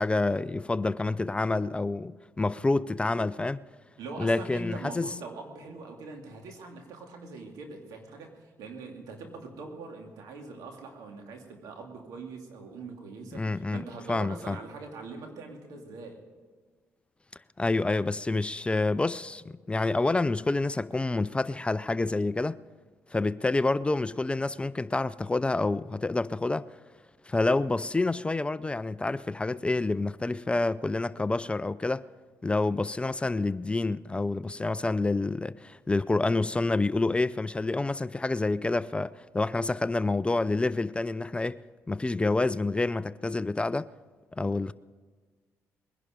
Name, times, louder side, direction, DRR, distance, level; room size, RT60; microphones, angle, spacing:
voice 1, 0.0-3.6 4.2-5.1 13.3-14.6 17.6-22.6 23.1-26.6 27.3-32.0 32.4-41.6 41.9-43.9 44.3-44.7, left 2 dB, 15° left, 0.4 m, -28 dB
voice 2, 4.0-16.2, right 3 dB, 80° right, 2.5 m, -42 dB
21.0 x 11.0 x 5.1 m
supercardioid pair, 70°, 6 cm